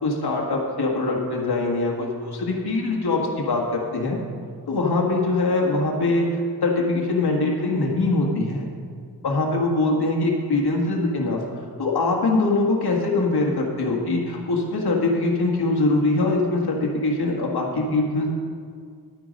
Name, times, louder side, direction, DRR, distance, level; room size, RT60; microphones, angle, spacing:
voice 1, 0.0-3.2 3.5-4.2 4.7-6.3 6.6-8.7 9.2-11.4 11.8-18.3, left 2 dB, 70° left, -1 dB, 1.6 m, -22 dB
10.5 x 9.4 x 5.2 m, 2.1 s
wide cardioid pair, 105°, 39 cm